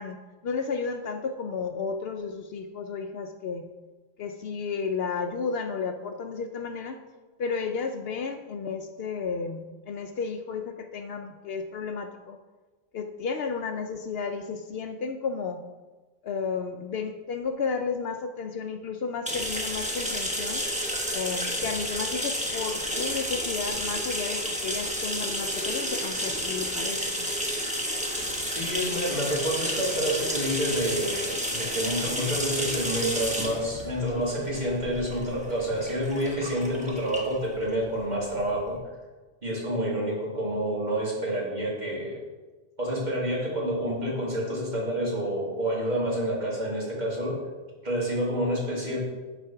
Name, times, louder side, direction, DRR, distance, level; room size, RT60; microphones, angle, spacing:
voice 1, 0.0-3.6 4.2-7.0 7.4-12.4 12.9-15.6 16.2-20.6 21.1-27.3, left 5 dB, 65° left, 6 dB, 0.7 m, -33 dB
sound 1, 19.3-38.7, equal, 5° right, 0.9 m, -31 dB
voice 2, 28.6-38.8 39.4-42.2 42.8-47.4 47.8-49.0, equal, 40° right, -5 dB, 2.3 m, -28 dB
10.0 x 4.2 x 5.6 m, 1.3 s
omnidirectional pair, 1.1 m